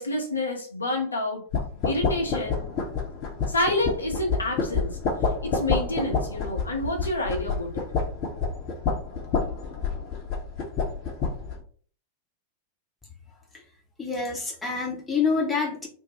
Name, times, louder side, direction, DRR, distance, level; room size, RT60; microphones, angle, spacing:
voice 1, 0.0-1.4 1.8-2.7 3.5-5.0 5.4-7.8, left 1 dB, 75° left, 0.7 m, -28 dB
sound 1, 1.5-11.6, left 4 dB, 40° left, 0.8 m, -28 dB
voice 2, 14.0-15.9, left 5 dB, 10° left, 0.9 m, -27 dB
2.6 x 2.2 x 2.9 m
figure-of-eight pair, 90°, 0 cm